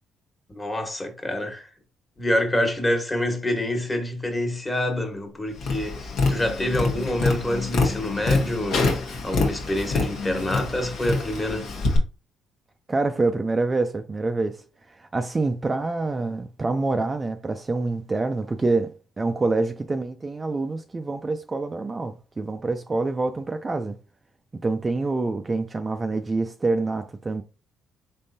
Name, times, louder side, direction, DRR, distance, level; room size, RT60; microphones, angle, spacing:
voice 1, 0.5-1.7 2.2-11.7, left 1 dB, 20° left, 1.4 m, -27 dB
Tap, 5.6-12.0, left 3 dB, 70° left, 1.1 m, -26 dB
voice 2, 12.9-24.0 24.6-27.4, right 3 dB, 30° right, 0.4 m, -26 dB
4.1 x 3.6 x 2.7 m
supercardioid pair, 65°, 0 cm